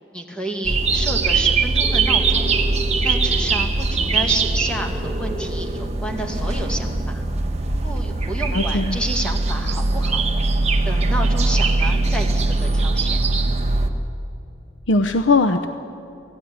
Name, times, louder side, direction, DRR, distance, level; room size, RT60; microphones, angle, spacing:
voice 1, 0.1-2.5 3.0-7.2 7.8-10.2 10.8-13.2, right 1 dB, 5° left, 2 dB, 2.0 m, -30 dB
sound 1, 0.6-13.9, right 3 dB, 35° right, 1.5 m, -21 dB
voice 2, 8.5-9.0 14.9-15.7, left 3 dB, 80° left, 8 dB, 0.7 m, -19 dB
19.0 x 15.5 x 9.5 m, 2.9 s
head